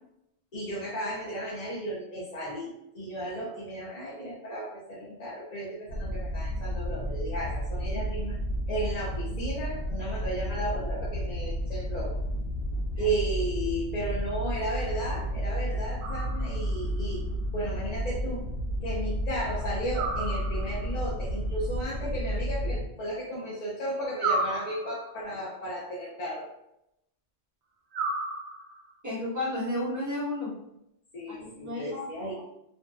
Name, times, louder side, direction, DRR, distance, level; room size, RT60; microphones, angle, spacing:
voice 1, 0.5-8.4 8.7-12.2 13.0-17.3 17.5-18.5 18.8-26.5 31.1-32.4, right 1 dB, 50° left, -6 dB, 0.5 m, -34 dB
Rocket Thrust effect, 5.9-22.9, equal, 85° left, 0.9 m, -32 dB
sound 1, 16.0-16.8 19.9-21.0 24.2-25.3 27.9-28.9, right 3 dB, 75° right, 0.8 m, -33 dB
voice 2, 29.0-30.5 31.3-32.1, left 1 dB, 20° right, -6 dB, 0.7 m, -32 dB
2.6 x 2.4 x 2.2 m, 0.81 s
omnidirectional pair, 1.2 m